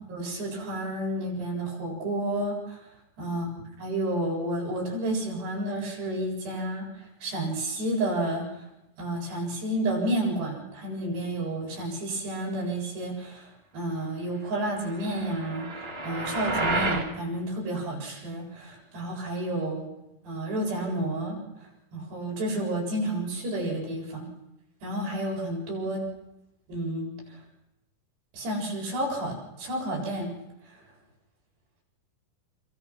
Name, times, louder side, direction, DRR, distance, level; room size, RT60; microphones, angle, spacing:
voice 1, 0.1-2.8 3.2-3.5 3.8-6.9 7.2-8.4 9.0-13.5 13.7-19.9 20.2-21.4 21.9-24.3 24.8-26.1 26.7-27.1 28.3-30.3, right 1 dB, 75° right, -2 dB, 9.6 m, -30 dB
sound 1, 14.9-17.1, right 2 dB, 25° right, 1.2 m, -30 dB
27.5 x 26.0 x 6.2 m, 0.92 s
omnidirectional pair, 4.9 m